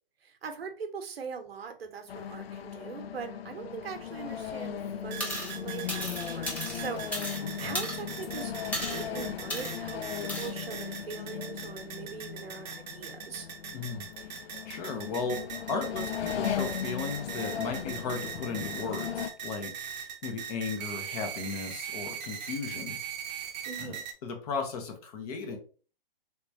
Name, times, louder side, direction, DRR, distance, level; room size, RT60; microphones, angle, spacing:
voice 1, 0.2-8.5 8.8-10.0 10.4-13.5 23.6-24.0, right 6 dB, 85° right, 6 dB, 0.8 m, -41 dB
sound 1, 2.1-19.3, left 8 dB, 85° left, 0.5 m, -37 dB
sound 2, 5.1-24.1, right 8 dB, 45° right, 0.7 m, -41 dB
sound 3, 5.2-5.5 5.9-7.4 7.7-8.2 8.7-9.0 9.5-9.7 10.3-10.5, equal, 5° left, 0.7 m, -35 dB
voice 2, 7.4-7.8 13.7-14.1 14.7-15.4 15.7-23.0 23.8-25.6, left 4 dB, 40° left, 5 dB, 0.9 m, -36 dB
3.5 x 2.9 x 2.6 m, 0.39 s
hypercardioid pair, 140°, 29 cm